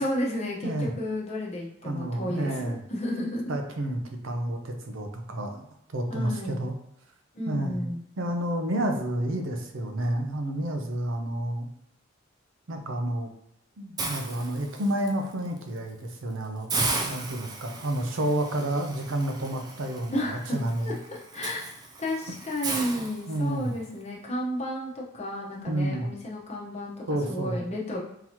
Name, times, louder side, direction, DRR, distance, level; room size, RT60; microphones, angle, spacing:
voice 1, 0.0-3.5 6.1-6.6 7.3-8.0 20.1-20.6 20.8-20.9 21.3-21.6 22.0-26.9 27.3-28.0, equal, 35° left, -4 dB, 1.0 m, -32 dB
voice 2, 1.8-2.8 3.5-5.7 5.9-6.7 7.5-7.9 8.2-11.7 12.7-13.3 13.8-16.7 17.0-21.0 23.3-23.7 25.7-26.1 27.1-27.7, right 1 dB, 70° right, 4 dB, 0.6 m, -30 dB
Hiss, 14.0-15.1 15.6-15.8 16.1-16.2 16.7-23.8, right 3 dB, 20° right, 0.3 m, -35 dB
3.8 x 2.9 x 2.9 m, 0.76 s
head